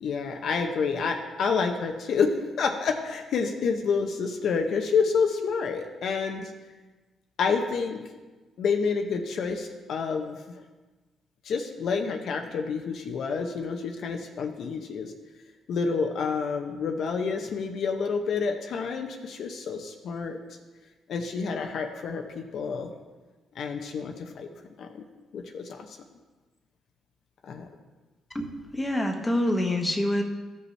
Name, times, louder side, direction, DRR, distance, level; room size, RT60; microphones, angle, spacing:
voice 1, 0.0-6.5 7.4-8.0 8.6-10.6 11.4-15.1 15.7-20.4 21.1-22.9 23.5-24.5 24.8-25.0 25.3-26.0 27.4-27.7, left 5 dB, 65° left, 3 dB, 0.7 m, -28 dB
voice 2, 28.3-30.2, left 1 dB, 10° left, 2 dB, 1.1 m, -26 dB
14.0 x 5.4 x 3.2 m, 1.2 s
cardioid pair, 90°, 0 cm